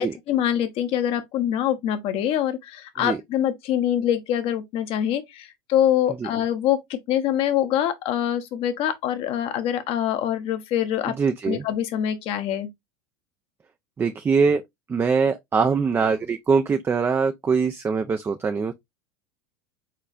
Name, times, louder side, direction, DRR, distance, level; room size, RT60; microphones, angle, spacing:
voice 1, 0.0-11.1 11.5-12.7, left 10 dB, 55° left, 1.0 m, -24 dB
voice 2, 11.2-11.6 14.0-14.6 14.9-18.7, right 5 dB, 20° right, 0.4 m, -22 dB
4.4 x 4.0 x 2.5 m
hypercardioid pair, 100°, 12 cm